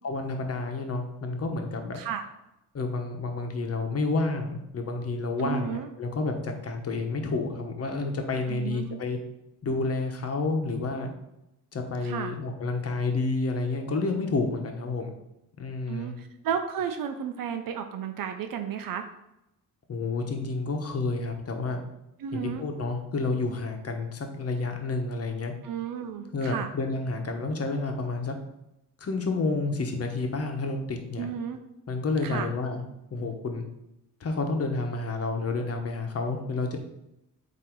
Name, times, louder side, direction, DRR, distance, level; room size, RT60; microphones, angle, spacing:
voice 1, 0.0-2.0 2.7-9.2 9.6-11.1 11.7-15.2 15.6-16.1 19.9-21.8 22.3-25.5 26.3-28.4 29.0-31.3 31.9-32.8 33.1-33.6 34.2-36.8, left 3 dB, 40° left, 4 dB, 1.2 m, -30 dB
voice 2, 5.4-5.9 8.5-9.0 12.0-12.3 15.9-19.1 22.2-22.6 25.6-26.7 31.2-31.6 32.2-32.5, right 8 dB, 65° right, 7 dB, 0.7 m, -33 dB
8.0 x 3.0 x 4.6 m, 0.89 s
cardioid pair, 100°, 36 cm